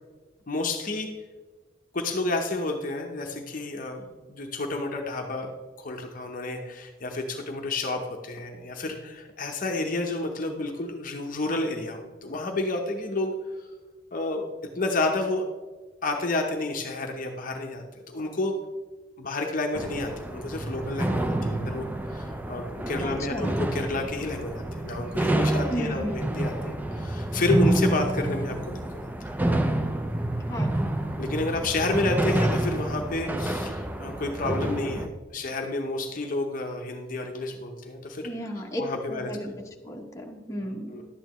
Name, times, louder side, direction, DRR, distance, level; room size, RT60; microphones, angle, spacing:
voice 1, 0.5-1.1 1.9-5.5 5.8-13.3 13.6-13.7 14.1-14.5 14.7-15.4 16.0-18.5 19.2-21.9 22.1-28.8 31.2-39.3 40.5-41.1, left 2 dB, 45° left, 3 dB, 0.7 m, -30 dB
sound 1, 19.7-35.1, right 1 dB, 10° right, 0.4 m, -28 dB
voice 2, 23.0-23.5 25.7-26.2 30.4-30.8 38.2-38.8 39.1-39.5 39.8-41.0, equal, 15° left, 0 dB, 0.9 m, -34 dB
11.0 x 8.7 x 3.0 m, 1.3 s
head